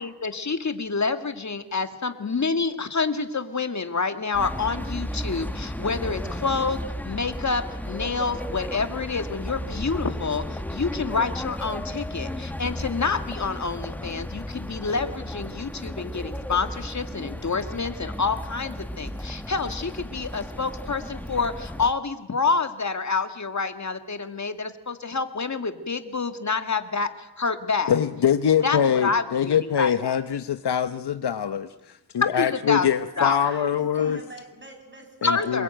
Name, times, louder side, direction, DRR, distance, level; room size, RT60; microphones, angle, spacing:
voice 1, 0.0-27.9 28.6-30.2 32.4-32.9 33.2-33.4 35.2-35.6, left 4 dB, 40° left, 8 dB, 2.1 m, -28 dB
sound 1, 4.3-21.9, left 1 dB, 5° left, 1.1 m, -34 dB
voice 2, 27.9-34.2 35.2-35.6, left 8 dB, 70° left, 10 dB, 1.0 m, -24 dB
voice 3, 33.1-35.6, right 2 dB, 25° right, 4 dB, 6.6 m, -45 dB
27.0 x 21.5 x 9.1 m, 0.95 s
wide cardioid pair, 120°, 42 cm